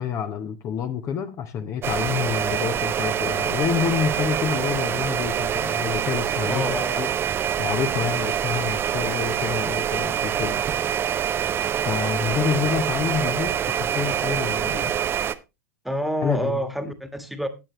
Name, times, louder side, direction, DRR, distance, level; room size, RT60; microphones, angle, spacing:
voice 1, 0.0-7.1 7.6-10.6 11.8-14.9 16.2-16.6, left 7 dB, 35° left, 1.0 m, -28 dB
sound 1, 1.8-15.3, right 9 dB, 25° right, 0.7 m, -25 dB
voice 2, 6.5-7.1 15.8-17.5, equal, ahead, 1.6 m, -28 dB
13.5 x 9.0 x 3.1 m
figure-of-eight pair, 90°, 9 cm